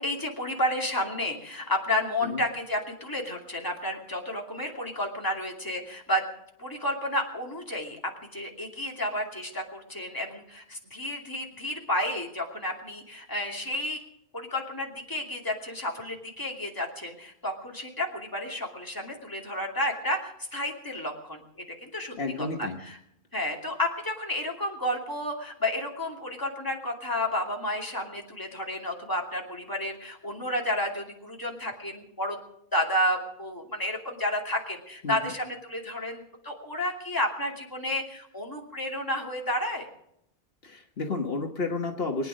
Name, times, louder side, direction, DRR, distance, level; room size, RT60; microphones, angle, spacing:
voice 1, 0.0-6.2 6.6-8.0 8.3-14.0 14.3-21.4 21.8-23.0 23.3-32.4 32.7-39.9, left 1 dB, 20° left, 0 dB, 2.6 m, -31 dB
voice 2, 22.2-22.8 35.0-35.2 40.6-42.3, left 3 dB, 70° left, 3 dB, 1.6 m, -31 dB
23.5 x 9.5 x 6.3 m, 0.75 s
omnidirectional pair, 1.1 m